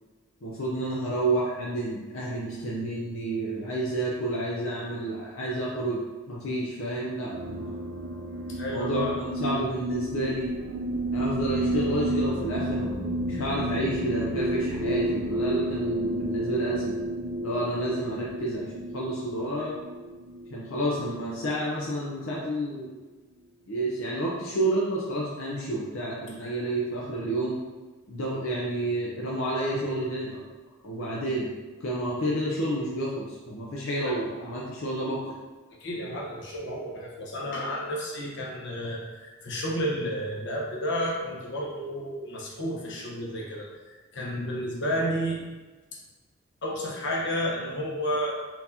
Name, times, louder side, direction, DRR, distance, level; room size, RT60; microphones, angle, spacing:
voice 1, 0.4-7.7 8.7-10.5 11.1-17.0 17.4-19.7 20.5-22.9 23.7-27.6 28.1-30.4 30.8-31.5 31.8-35.3, right 1 dB, 85° left, -4 dB, 0.7 m, -30 dB
sound 1, 7.3-21.9, right 1 dB, 65° right, 0.6 m, -31 dB
voice 2, 8.5-9.1 34.0-34.1 35.8-45.4 46.6-48.4, equal, 60° left, -3 dB, 1.1 m, -31 dB
4.4 x 4.1 x 2.8 m, 1.3 s
head